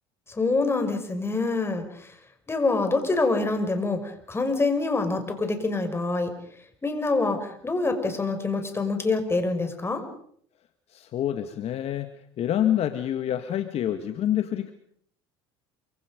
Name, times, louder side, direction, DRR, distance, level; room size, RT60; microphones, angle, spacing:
voice 1, 0.3-2.1 2.5-6.3 6.8-10.0, left 3 dB, 20° left, 6 dB, 6.2 m, -26 dB
voice 2, 10.9-12.1 12.4-14.7, left 11 dB, 50° left, 8 dB, 1.9 m, -27 dB
28.0 x 25.5 x 5.3 m, 0.62 s
hypercardioid pair, 80°, 13 cm